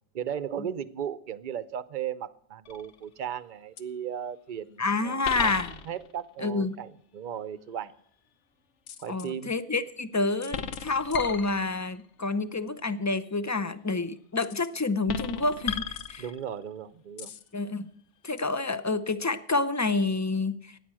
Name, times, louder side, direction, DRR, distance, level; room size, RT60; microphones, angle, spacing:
voice 1, 0.1-7.9 9.0-9.5 16.2-17.3, right 9 dB, 50° right, 15 dB, 0.8 m, -36 dB
sound 1, 2.6-3.1 3.8-3.9 5.2-6.2 8.9-9.3 10.4-12.0 14.4-14.7 15.1-16.6 17.2-17.5 18.4-18.5, left 7 dB, 80° left, 1.1 m, -35 dB
voice 2, 4.8-5.7 6.4-6.8 9.1-16.2 17.5-17.9 18.2-20.8, left 3 dB, 20° left, 13 dB, 0.4 m, -28 dB
14.5 x 9.7 x 7.5 m, 0.65 s
omnidirectional pair, 1.2 m